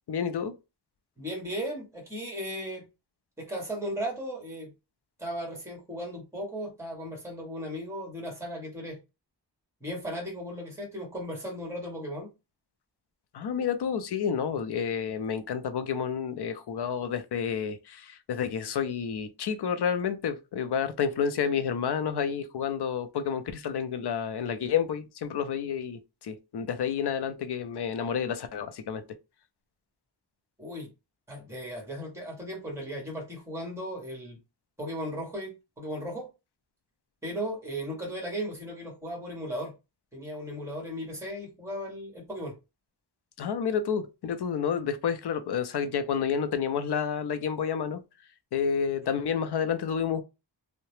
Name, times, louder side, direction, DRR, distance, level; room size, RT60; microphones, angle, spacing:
voice 1, 0.1-0.5 13.3-29.0 43.4-48.0 48.5-50.2, left 7 dB, 65° left, 0.5 m, -30 dB
voice 2, 1.2-2.9 3.4-4.7 5.2-9.0 9.8-12.3 30.6-30.9 31.3-34.4 34.8-36.3 37.2-39.7 40.1-42.6, equal, 5° right, 1.4 m, -36 dB
2.8 x 2.1 x 3.0 m
wide cardioid pair, 120°, 44 cm